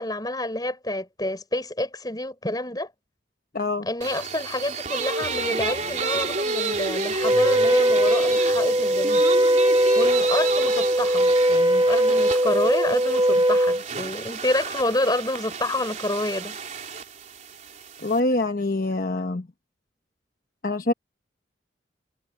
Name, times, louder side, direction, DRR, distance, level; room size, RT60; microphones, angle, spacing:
voice 1, 0.0-2.9 3.9-9.2 9.9-16.6, left 1 dB, 20° left, 6.0 m, -28 dB
voice 2, 3.5-3.9 18.0-19.5 20.6-20.9, left 2 dB, 50° left, 1.0 m, -25 dB
sound 1, 4.0-18.2, right 4 dB, 40° right, 3.7 m, -31 dB
Wind instrument woodwind instrument, 7.2-13.8, equal, 20° right, 3.0 m, -20 dB
head